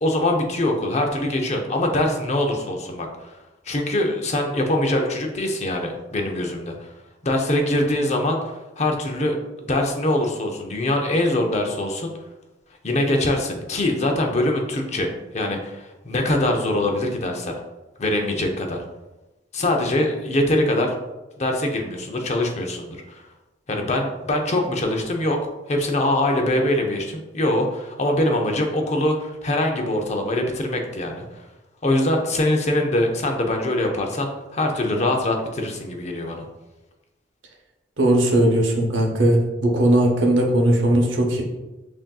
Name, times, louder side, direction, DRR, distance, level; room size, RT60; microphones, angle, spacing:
voice 1, 0.0-3.4 3.6-6.9 7.2-12.1 12.8-17.5 18.0-18.8 19.5-20.9 21.4-23.3 23.7-25.4 25.7-31.4 31.8-36.4, left 1 dB, 35° left, 3 dB, 0.6 m, -23 dB
voice 2, 38.0-41.4, right 1 dB, 75° right, 1 dB, 0.8 m, -18 dB
6.0 x 2.7 x 2.3 m, 1.1 s
head